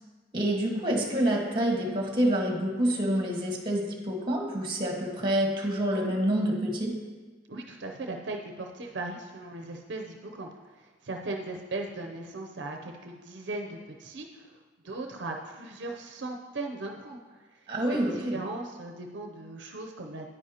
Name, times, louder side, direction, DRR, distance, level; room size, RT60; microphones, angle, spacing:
voice 1, 0.3-6.9 17.7-18.4, right 1 dB, 25° right, 0 dB, 1.5 m, -27 dB
voice 2, 7.5-14.6 14.8-20.3, right 2 dB, 70° right, 2 dB, 0.6 m, -38 dB
9.8 x 9.7 x 2.9 m, 1.3 s
head